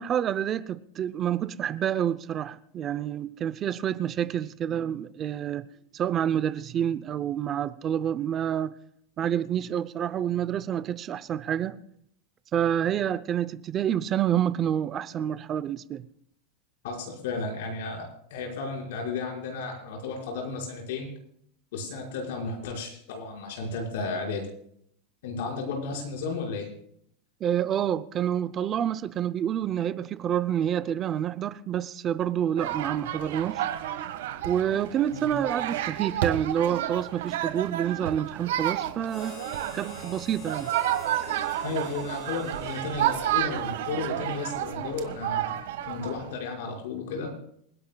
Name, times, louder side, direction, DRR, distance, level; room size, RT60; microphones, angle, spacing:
voice 1, 0.0-5.7 5.9-8.7 9.2-11.8 12.5-16.0 27.4-33.7 34.4-39.4 39.7-40.7, right 10 dB, 25° right, 0.5 m, -28 dB
voice 2, 16.8-21.1 21.7-24.5 25.2-26.7 35.1-35.4 41.6-45.5 45.9-47.3, left 4 dB, 70° left, 5.3 m, -33 dB
sound 1, 32.6-46.3, right 12 dB, 80° right, 1.5 m, -31 dB
Harmonica, 39.1-44.6, left 1 dB, 25° left, 2.5 m, -47 dB
27.5 x 11.0 x 2.3 m
supercardioid pair, 165°, 0 cm